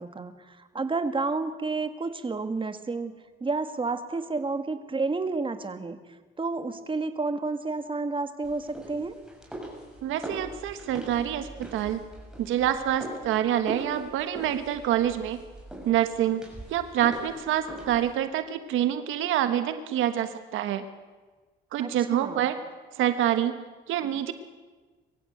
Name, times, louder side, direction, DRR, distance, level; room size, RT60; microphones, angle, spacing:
voice 1, 0.0-3.1 3.4-6.0 6.4-9.2 21.8-22.5, right 3 dB, 25° right, 9 dB, 1.8 m, -30 dB
sound 1, 8.4-18.2, right 1 dB, 5° right, 6.4 m, -41 dB
voice 2, 10.0-12.0 12.4-15.4 15.8-16.4 16.7-20.8 21.7-22.6 23.0-23.6 23.9-24.3, right 11 dB, 90° right, 10 dB, 1.4 m, -26 dB
23.0 x 15.5 x 7.9 m, 1.3 s
cardioid pair, 90°, 20 cm